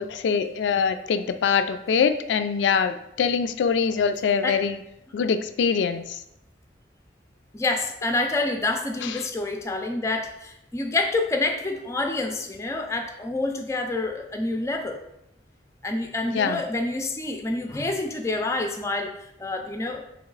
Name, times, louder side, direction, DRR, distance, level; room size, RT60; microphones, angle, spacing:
voice 1, 0.0-4.8 5.1-6.2 9.0-9.1 16.3-16.6, left 6 dB, 90° left, 10 dB, 0.3 m, -24 dB
voice 2, 7.5-15.0 15.8-19.1 19.4-20.0, left 2 dB, 15° left, 4 dB, 0.4 m, -27 dB
3.1 x 2.9 x 3.8 m, 0.80 s
head